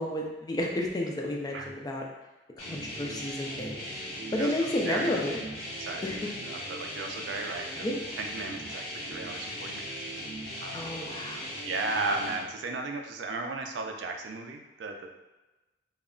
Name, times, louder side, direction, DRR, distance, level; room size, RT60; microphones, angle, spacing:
voice 1, 0.0-2.0 2.6-3.9 4.3-5.4 6.0-6.2 7.8-8.0 10.7-11.5, left 1 dB, 20° left, 0 dB, 0.3 m, -31 dB
sound 1, 2.6-12.4, equal, 60° left, 0.9 m, -38 dB
voice 2, 4.4-5.4 5.9-7.9 8.2-9.9 10.6-10.9 11.6-15.1, right 3 dB, 75° right, 3 dB, 0.4 m, -35 dB
2.2 x 2.0 x 3.6 m, 1.1 s
head